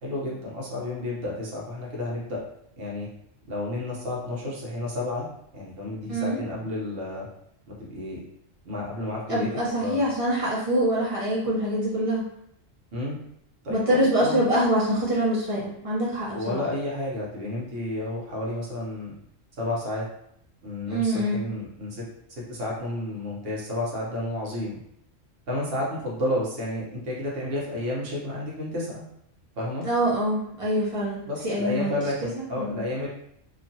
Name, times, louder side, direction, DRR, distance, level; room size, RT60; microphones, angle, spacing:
voice 1, 0.0-2.4 2.8-3.1 3.5-5.3 5.5-7.3 7.9-8.2 8.6-9.5 9.8-10.0 12.9-13.2 13.6-14.4 16.3-19.1 19.6-20.1 20.6-22.0 22.3-24.8 25.5-29.0 29.6-29.9 31.3-33.1, left 1 dB, 50° right, -4 dB, 1.0 m, -31 dB
voice 2, 9.3-12.2 13.7-16.6 20.9-21.4 29.8-32.0 32.6-32.8, right 1 dB, 30° right, -6 dB, 0.7 m, -25 dB
3.0 x 2.4 x 2.7 m, 0.72 s
omnidirectional pair, 1.4 m